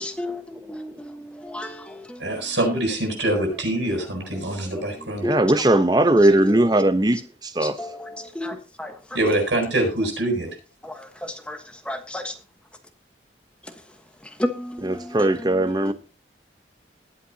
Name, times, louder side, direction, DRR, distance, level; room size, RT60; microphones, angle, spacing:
voice 1, 0.0-2.6 3.8-5.8 6.4-6.8 7.6-9.0 10.8-11.1 11.9-12.4 13.6-13.8 14.2-15.9, left 1 dB, 5° left, 1.2 m, -33 dB
voice 2, 2.2-5.3 9.1-10.5, right 1 dB, 80° right, 7.6 m, -24 dB
voice 3, 5.2-7.8 14.8-15.9, right 1 dB, 20° right, 0.8 m, -19 dB
21.0 x 8.4 x 2.8 m
head